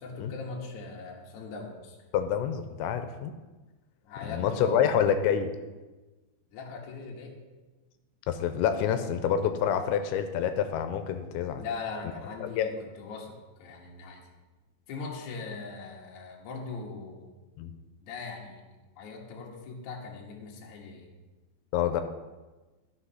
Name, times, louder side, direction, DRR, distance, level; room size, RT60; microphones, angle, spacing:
voice 1, 0.0-2.0 4.0-5.0 6.5-7.4 11.5-14.2 14.9-17.3 18.0-21.1, left 4 dB, 55° left, -1 dB, 2.4 m, -40 dB
voice 2, 2.1-3.3 4.3-5.5 8.3-11.6 12.4-12.7 17.6-17.7 21.7-22.0, left 8 dB, 85° left, 8 dB, 2.9 m, -27 dB
12.5 x 6.6 x 5.6 m, 1.2 s
omnidirectional pair, 5.1 m